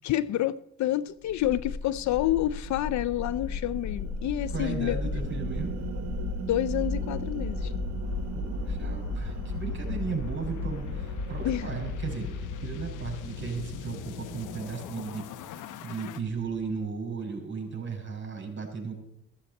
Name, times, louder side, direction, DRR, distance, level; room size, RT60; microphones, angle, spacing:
voice 1, 0.0-5.0 6.5-7.7 11.4-11.7, left 13 dB, 70° left, 0.5 m, -28 dB
sound 1, 1.2-16.2, left 7 dB, 85° left, 0.9 m, -36 dB
sound 2, 1.5-15.1, right 7 dB, 60° right, 1.2 m, -39 dB
voice 2, 4.5-5.8 8.3-15.6 15.8-18.9, right 5 dB, 40° right, 5.7 m, -35 dB
14.5 x 14.5 x 4.2 m
cardioid pair, 90°, 30 cm